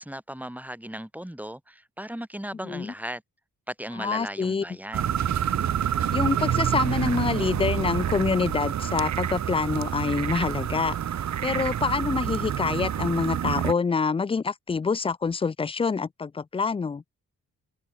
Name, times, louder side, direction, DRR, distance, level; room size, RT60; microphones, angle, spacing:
voice 1, 0.0-3.2 3.7-5.2, equal, 5° right, 5.9 m, -37 dB
voice 2, 2.6-2.9 4.0-4.6 6.1-11.0 11.4-17.0, left 5 dB, 15° left, 0.4 m, -26 dB
sound 1, 4.9-13.7, right 9 dB, 55° right, 0.9 m, -27 dB
supercardioid pair, 55°, 34 cm